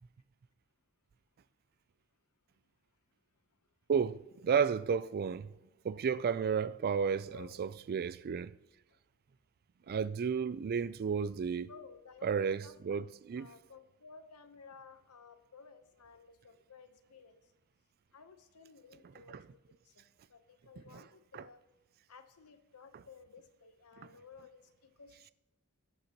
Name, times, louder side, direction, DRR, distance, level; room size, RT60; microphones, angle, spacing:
voice 1, 3.9-5.5 5.8-8.5 9.9-11.7 12.2-13.5 19.3-19.4 21.3-21.4, right 6 dB, 45° right, 0.3 m, -32 dB
voice 2, 7.3-7.6 11.7-12.3 12.6-17.4 18.1-19.4 19.8-20.0 20.3-21.6 22.1-25.3, left 5 dB, 85° left, 0.9 m, -56 dB
19.5 x 7.8 x 3.0 m
head